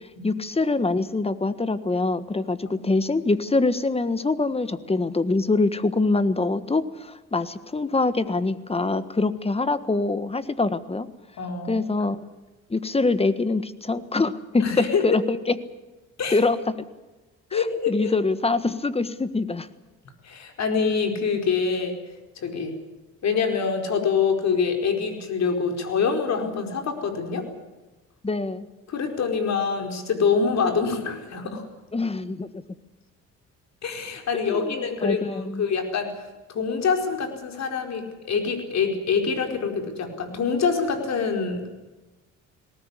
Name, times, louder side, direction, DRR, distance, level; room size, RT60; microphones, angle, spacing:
voice 1, 0.2-11.1 11.7-12.2 12.7-15.6 16.3-16.7 17.5-19.7 28.2-28.7 31.9-32.5 34.5-35.6, left 3 dB, 20° left, 13 dB, 1.5 m, -24 dB
voice 2, 11.4-11.8 14.6-15.1 16.2-16.4 17.5-18.1 20.2-22.0 22.4-22.8 23.2-27.5 28.9-31.6 33.8-36.1 36.5-41.7, left 5 dB, 60° left, 4 dB, 4.8 m, -25 dB
19.5 x 18.5 x 9.9 m, 1.1 s
cardioid pair, 90°, 30 cm